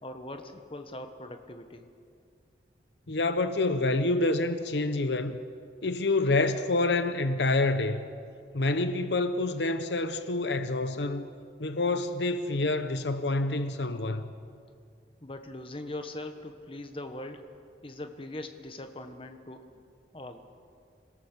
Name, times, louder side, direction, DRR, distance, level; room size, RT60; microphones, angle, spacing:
voice 1, 0.0-1.8 15.2-17.5 17.8-19.8 20.1-20.5, left 1 dB, 30° left, 1.3 m, -41 dB
voice 2, 3.1-5.4 5.8-8.0 8.5-11.3 11.6-14.3, left 2 dB, 75° left, 0.9 m, -27 dB
26.5 x 18.0 x 6.9 m
head